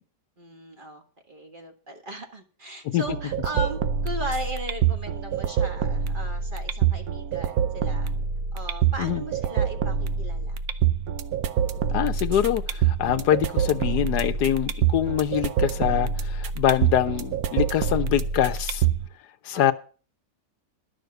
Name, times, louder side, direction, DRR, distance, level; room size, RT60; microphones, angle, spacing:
voice 1, 0.4-8.1 8.5-10.6 19.5-19.6, right 1 dB, 30° right, 1.8 m, -37 dB
sound 1, 3.1-19.1, right 7 dB, 65° right, 1.2 m, -26 dB
voice 2, 11.9-18.9 19.4-19.7, left 11 dB, 75° left, 1.3 m, -24 dB
12.0 x 6.6 x 7.9 m
omnidirectional pair, 1.8 m